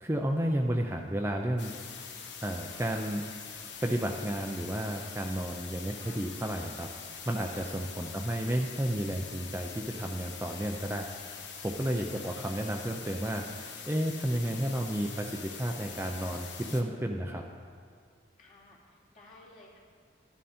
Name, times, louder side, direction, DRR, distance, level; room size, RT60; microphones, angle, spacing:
voice 1, 0.0-1.7 2.4-3.2 3.8-6.9 7.3-11.1 11.6-17.4, right 1 dB, 15° right, 2 dB, 0.5 m, -32 dB
sound 1, 1.6-16.8, left 6 dB, 70° left, 1.1 m, -44 dB
voice 2, 5.8-6.4 8.0-8.4 12.0-12.5 18.4-19.8, left 2 dB, 40° left, -5 dB, 2.6 m, -56 dB
12.5 x 11.0 x 4.3 m, 2.2 s
head